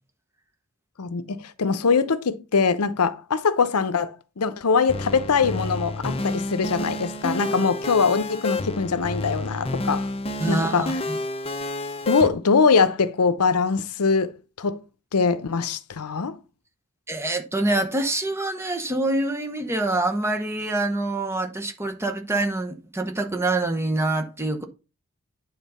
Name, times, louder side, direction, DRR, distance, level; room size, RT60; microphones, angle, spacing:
voice 1, 1.0-10.1 10.5-11.0 12.1-14.8 15.1-16.4, left 5 dB, 90° left, 0.7 m, -22 dB
sound 1, 4.9-12.3, left 2 dB, 25° left, 0.7 m, -29 dB
voice 2, 10.4-11.2 17.1-24.6, right 2 dB, 10° right, 0.9 m, -25 dB
9.3 x 3.9 x 5.5 m
head